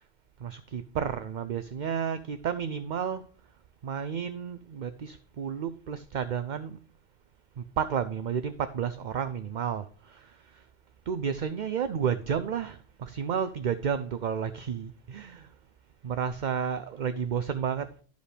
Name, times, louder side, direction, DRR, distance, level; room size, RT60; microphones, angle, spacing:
voice 1, 0.4-3.2 3.8-6.8 7.6-10.6 11.1-15.5 16.0-17.9, right 7 dB, 50° right, 0.6 m, -31 dB
12.0 x 5.2 x 4.9 m
omnidirectional pair, 1.1 m